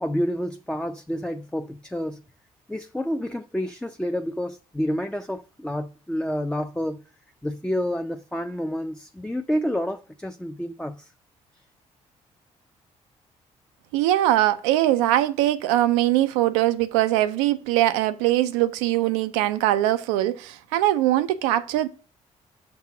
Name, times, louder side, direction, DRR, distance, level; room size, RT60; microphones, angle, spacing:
voice 1, 0.0-2.2 2.7-7.0 7.4-11.1, equal, 5° left, 0.5 m, -29 dB
voice 2, 13.9-21.9, right 14 dB, 90° right, 0.4 m, -22 dB
6.0 x 3.6 x 5.8 m
hypercardioid pair, 50°, 16 cm